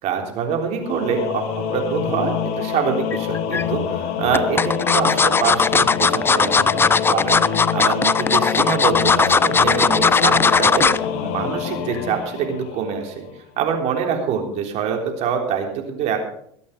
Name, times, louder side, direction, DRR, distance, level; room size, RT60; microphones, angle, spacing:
voice 1, 0.0-13.3 13.6-16.2, right 7 dB, 55° right, 3 dB, 3.7 m, -25 dB
Singing / Musical instrument, 0.8-13.3, left 8 dB, 60° left, 1.8 m, -26 dB
sound 1, 3.1-3.6 4.3-11.0 11.4-11.7 12.0-12.1, left 5 dB, 15° left, 0.4 m, -17 dB
21.5 x 8.5 x 5.2 m, 0.69 s
hypercardioid pair, 80°, 14 cm